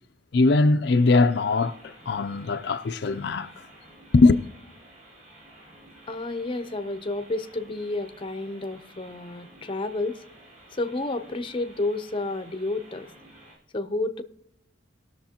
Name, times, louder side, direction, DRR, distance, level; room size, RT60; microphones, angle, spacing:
voice 1, 0.3-3.5 4.1-4.4, left 3 dB, 65° left, 0.5 m, -21 dB
sound 1, 0.9-13.6, right 1 dB, 40° right, 4.1 m, -52 dB
voice 2, 6.1-10.2 10.8-13.1 13.7-14.2, left 2 dB, 30° left, 0.7 m, -30 dB
20.0 x 6.6 x 2.9 m
head